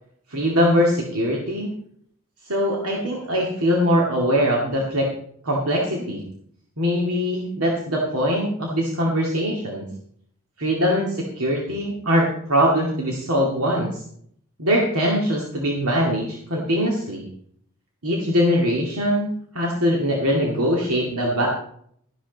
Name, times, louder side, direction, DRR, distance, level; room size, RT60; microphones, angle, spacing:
voice 1, 0.3-1.7 2.5-5.1 5.4-6.2 6.8-9.8 10.6-14.0 14.6-17.2 18.0-21.5, equal, 85° right, -2 dB, 2.3 m, -22 dB
13.5 x 11.0 x 4.1 m, 0.65 s
head